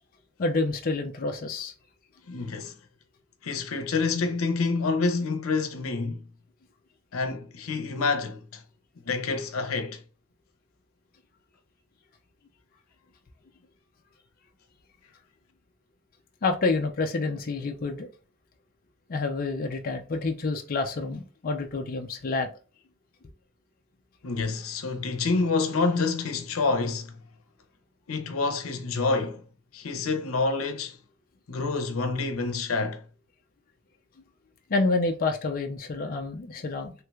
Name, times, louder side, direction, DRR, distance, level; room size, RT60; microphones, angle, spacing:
voice 1, 0.4-1.7 16.4-18.1 19.1-22.5 34.7-36.9, left 3 dB, 45° left, 0.4 m, -28 dB
voice 2, 2.3-2.8 3.4-6.3 7.1-8.6 9.0-10.0 24.2-27.2 28.1-29.4 29.7-31.0 31.5-33.0, left 4 dB, 85° left, 0.6 m, -27 dB
3.2 x 3.1 x 2.3 m
head